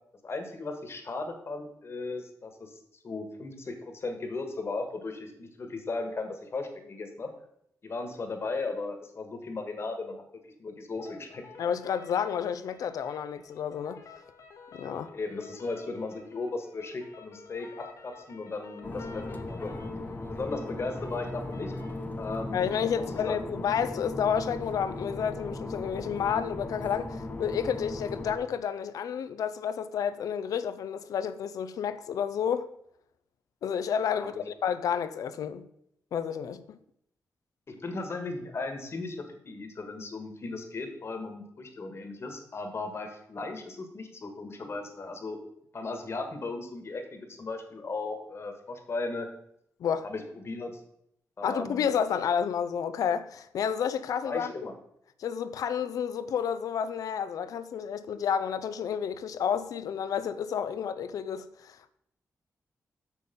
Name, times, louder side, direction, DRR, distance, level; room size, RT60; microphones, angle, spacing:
voice 1, 0.2-2.8 3.0-7.3 7.8-11.4 15.1-19.7 20.3-21.7 22.2-22.7 23.0-23.5 34.1-34.4 37.7-39.2 39.4-45.4 45.7-49.3 50.0-50.8 51.4-51.9 54.2-54.7, left 3 dB, 45° left, 1.5 m, -36 dB
sound 1, 11.0-22.0, left 5 dB, 70° left, 1.2 m, -51 dB
voice 2, 11.6-14.0 14.7-15.1 22.5-32.7 33.6-35.7 36.1-36.8 49.8-50.1 51.4-54.5 55.2-61.9, left 8 dB, 90° left, 0.5 m, -30 dB
sound 2, 18.8-28.4, left 2 dB, 30° left, 0.9 m, -37 dB
6.8 x 6.4 x 5.2 m
cardioid pair, 90°, 6 cm